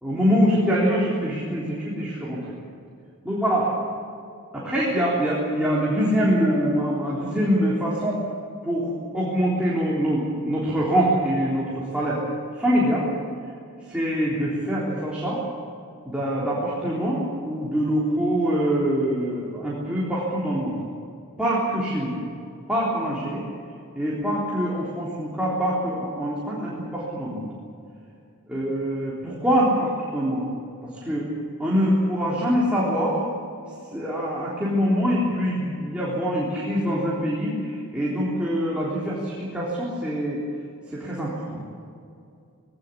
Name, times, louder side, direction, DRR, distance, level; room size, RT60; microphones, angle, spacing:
voice 1, 0.0-2.5 3.2-3.7 4.5-8.2 8.6-12.2 12.5-13.1 13.9-15.4 16.1-20.8 21.4-22.2 22.7-23.4 24.0-27.5 28.5-30.4 30.8-31.3 31.6-33.2 33.9-40.4 40.9-41.6, equal, 5° right, -8 dB, 3.7 m, -24 dB
20.5 x 18.0 x 8.5 m, 2.5 s
head